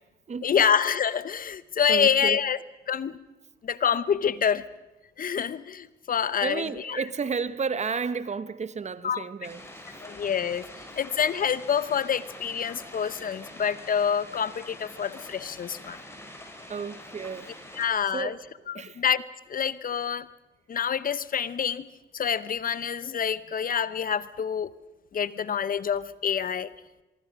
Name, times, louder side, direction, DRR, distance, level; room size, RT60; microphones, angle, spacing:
voice 1, 0.4-2.6 2.9-3.2 3.6-4.6 5.2-6.6 6.9-7.0 9.0-9.2 10.0-10.6 11.0-16.0 17.8-18.3 19.0-19.2 19.5-20.3 20.7-21.9 22.1-24.7 25.1-26.7, left 7 dB, 45° left, 0.8 m, -26 dB
voice 2, 1.9-2.4 6.4-9.7 16.7-19.0, right 5 dB, 35° right, 1.1 m, -32 dB
sound 1, 9.4-17.9, left 1 dB, 15° left, 6.4 m, -45 dB
24.0 x 23.0 x 6.3 m
cardioid pair, 90°, 20 cm